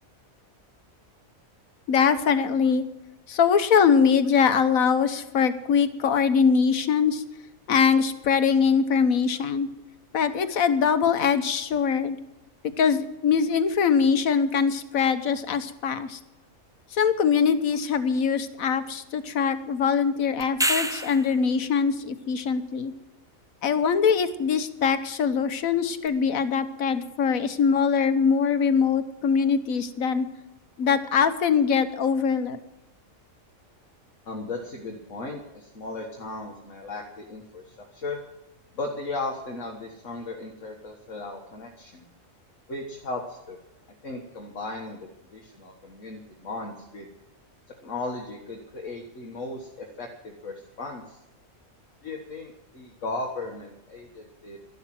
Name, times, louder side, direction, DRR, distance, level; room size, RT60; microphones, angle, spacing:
voice 1, 1.9-2.8 3.3-7.2 7.7-9.7 10.1-12.2 12.8-16.2 16.9-22.9 23.6-30.2 30.8-32.6, left 6 dB, 80° left, 11 dB, 1.4 m, -22 dB
sound 1, 20.4-21.4 26.1-26.2, right 1 dB, 5° right, 0.3 m, -26 dB
voice 2, 34.3-38.2 38.7-42.1 42.7-43.6 44.0-45.0 45.3-47.1 47.8-51.2 52.0-54.6, left 2 dB, 65° left, 1 dB, 1.8 m, -36 dB
12.0 x 12.0 x 7.6 m, 0.89 s
omnidirectional pair, 1.4 m